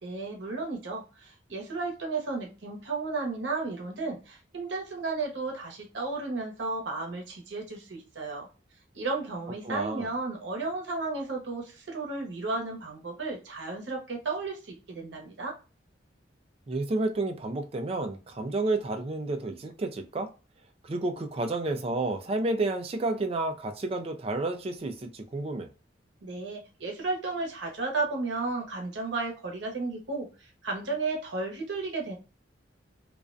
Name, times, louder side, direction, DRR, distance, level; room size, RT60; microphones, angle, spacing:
voice 1, 0.0-8.5 8.9-15.5 26.2-32.2, right 3 dB, 70° right, 0.8 m, -33 dB
voice 2, 9.6-10.1 16.7-20.3 20.8-25.7, right 2 dB, 30° right, 0.3 m, -30 dB
2.4 x 2.1 x 2.4 m
head